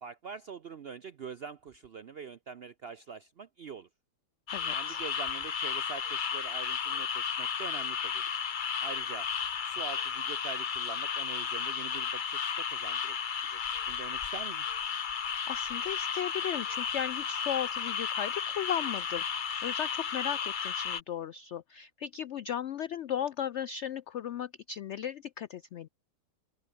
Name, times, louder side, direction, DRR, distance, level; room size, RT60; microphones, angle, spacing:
voice 1, 0.0-3.9 4.7-8.2 8.8-9.3 9.6-13.2 13.4-13.6 13.9-14.7, right 6 dB, 65° right, 0.6 m, -44 dB
voice 2, 4.5-5.0 15.5-25.9, left 9 dB, 80° left, 0.6 m, -36 dB
sound 1, 4.5-21.0, left 7 dB, 40° left, 0.7 m, -33 dB
open air
omnidirectional pair, 1.8 m